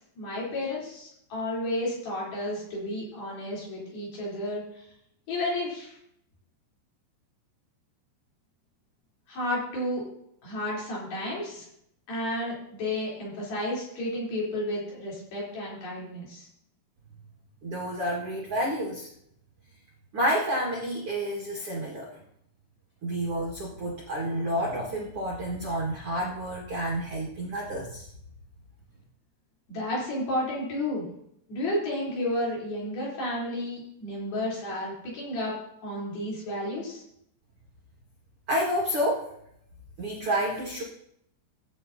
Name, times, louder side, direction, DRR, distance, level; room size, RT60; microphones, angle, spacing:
voice 1, 0.2-4.6 5.3-6.0 9.3-10.1 10.4-11.7 12.1-16.5 29.7-31.0 31.5-35.5 35.8-37.0, left 1 dB, 50° left, -6 dB, 5.5 m, -32 dB
voice 2, 17.6-19.1 20.1-22.1 23.0-28.1 38.5-39.2 40.0-40.8, equal, 75° right, -3 dB, 1.2 m, -29 dB
16.0 x 8.8 x 2.8 m, 0.73 s
omnidirectional pair, 5.8 m